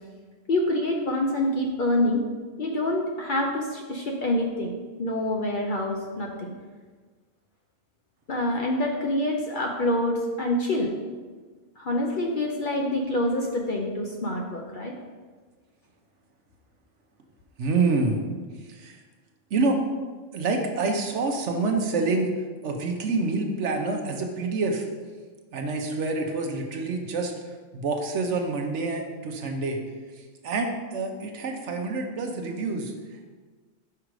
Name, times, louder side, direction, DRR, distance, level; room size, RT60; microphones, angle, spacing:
voice 1, 0.5-2.2 2.6-6.5 8.3-11.0 11.8-14.9, left 1 dB, 50° left, 0 dB, 0.7 m, -26 dB
voice 2, 17.6-18.2 18.7-19.0 19.5-19.8 20.3-22.3 22.6-24.9 25.5-27.3 27.7-29.8 30.4-32.9, right 3 dB, 70° right, 3 dB, 1.1 m, -27 dB
5.7 x 5.0 x 4.7 m, 1.4 s
omnidirectional pair, 1.3 m